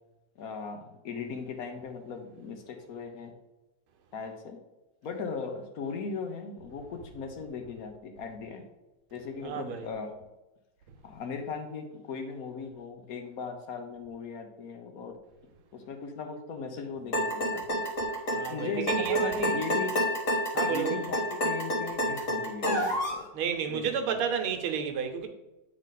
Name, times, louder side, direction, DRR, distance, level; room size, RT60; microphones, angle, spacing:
voice 1, 0.4-3.3 4.1-4.6 5.0-8.7 9.1-10.1 11.0-15.2 15.7-17.8 18.5-20.0 20.7-23.2 23.7-24.2, left 5 dB, 60° left, 1.0 m, -38 dB
voice 2, 9.4-9.9 18.3-19.7 20.5-21.0 23.3-25.3, right 7 dB, 85° right, 1.7 m, -31 dB
sound 1, 17.1-23.2, equal, 40° left, 1.7 m, -28 dB
8.6 x 3.7 x 3.9 m
omnidirectional pair, 2.3 m